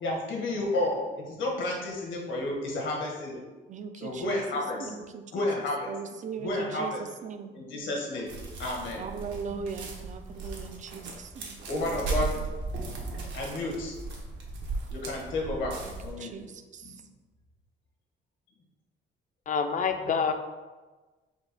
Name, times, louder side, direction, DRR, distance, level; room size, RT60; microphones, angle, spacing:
voice 1, 0.0-3.4 4.0-5.0 5.3-5.9 6.4-7.0 7.5-8.3 8.6-9.0 10.6-10.7 11.7-12.4 13.3-14.0 14.9-15.7 16.0-16.5 16.8-17.0 20.0-20.2, left 2 dB, 75° left, -1 dB, 1.3 m, -31 dB
voice 2, 3.7-7.5 9.0-12.0 15.8-17.0, right 6 dB, 40° right, 8 dB, 0.4 m, -40 dB
sound 1, 8.3-16.1, right 3 dB, 70° right, 1.0 m, -36 dB
voice 3, 19.5-20.3, left 6 dB, 40° left, 7 dB, 0.5 m, -27 dB
4.3 x 2.4 x 4.7 m, 1.2 s
cardioid pair, 90°, 20 cm